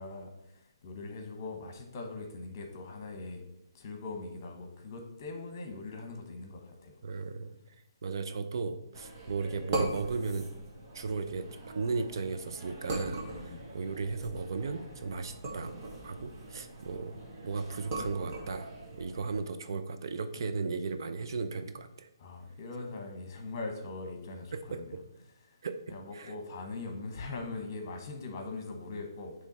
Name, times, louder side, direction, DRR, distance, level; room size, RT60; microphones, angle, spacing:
voice 1, 0.0-3.4 3.7-7.0 13.2-13.7 22.2-25.0 25.4-25.6 25.9-29.3, left 3 dB, 35° left, 3 dB, 1.3 m, -41 dB
voice 2, 7.0-7.5 8.0-10.5 10.9-11.5 11.7-15.8 16.0-17.1 17.4-22.1 24.5-24.8 25.6-25.8 26.1-26.3, right 4 dB, 60° right, 8 dB, 0.6 m, -35 dB
sound 1, 8.9-19.4, right 2 dB, 35° right, 1.6 m, -41 dB
8.9 x 3.2 x 4.2 m, 0.89 s
hypercardioid pair, 155°, 3 cm